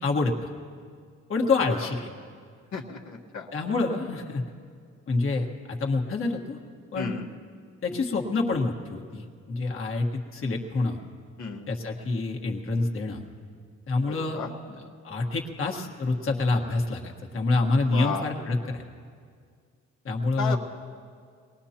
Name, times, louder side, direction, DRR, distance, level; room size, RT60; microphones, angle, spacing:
voice 1, 0.0-0.5 1.3-2.1 3.5-4.4 5.1-6.6 6.9-7.1 7.8-11.0 11.7-13.2 13.9-18.9 20.0-20.6, left 3 dB, 45° left, 0 dB, 1.6 m, -27 dB
voice 2, 2.7-3.5 6.9-7.3 11.4-11.7 14.1-14.5 17.9-18.2 20.4-20.6, left 4 dB, 65° left, -3 dB, 1.5 m, -33 dB
23.0 x 19.0 x 2.9 m, 2.1 s
cardioid pair, 90°, 30 cm